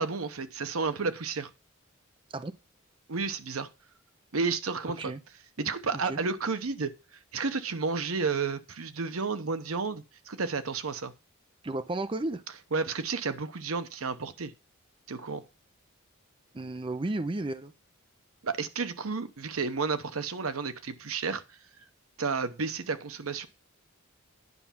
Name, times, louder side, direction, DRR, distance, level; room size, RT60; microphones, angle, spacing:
voice 1, 0.0-1.5 3.1-3.7 4.3-5.1 5.6-6.9 7.3-11.1 12.7-14.5 15.1-15.4 18.4-21.4 22.2-23.5, right 4 dB, 90° right, 0.9 m, -31 dB
voice 2, 4.8-5.2 6.0-6.2 11.6-12.4 16.5-17.7, right 2 dB, 25° right, 0.5 m, -33 dB
9.8 x 5.7 x 5.8 m
head